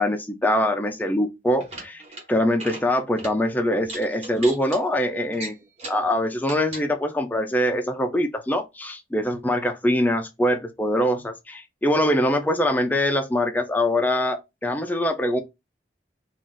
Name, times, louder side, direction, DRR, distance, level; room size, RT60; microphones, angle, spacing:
voice 1, 0.0-2.0 2.3-5.5 5.9-15.4, left 1 dB, 10° left, 0.4 m, -23 dB
sound 1, 1.5-2.2 2.5-2.8 3.2-3.3 3.8-4.8 5.3-6.1 6.4-6.9, right 2 dB, 35° right, 1.0 m, -37 dB
2.5 x 2.4 x 3.7 m
head